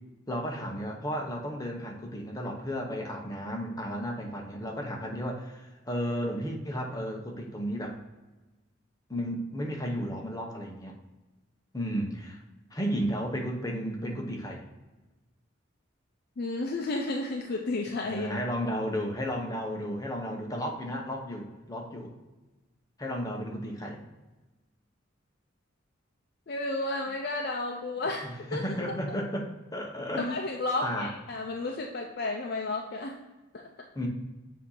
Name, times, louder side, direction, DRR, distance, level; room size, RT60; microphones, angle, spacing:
voice 1, 0.3-8.0 9.1-11.0 11.7-12.4 12.7-14.6 18.0-22.1 23.0-24.0 28.2-30.4 30.8-31.1 33.9-34.1, equal, 20° left, 1 dB, 0.8 m, -33 dB
voice 2, 16.4-18.3 26.5-29.1 30.2-33.2 33.5-33.6, left 2 dB, 55° left, 1 dB, 0.6 m, -32 dB
7.4 x 2.8 x 5.5 m, 1.1 s
head